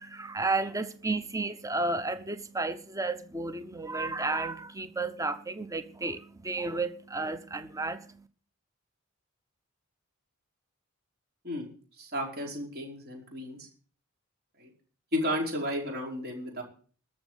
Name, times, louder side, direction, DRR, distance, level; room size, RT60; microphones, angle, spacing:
voice 1, 0.0-8.3, right 3 dB, 15° right, 0.8 m, -32 dB
voice 2, 12.0-13.6 14.6-14.7 15.1-16.6, equal, 50° right, 4.8 m, -33 dB
13.5 x 6.3 x 9.4 m
head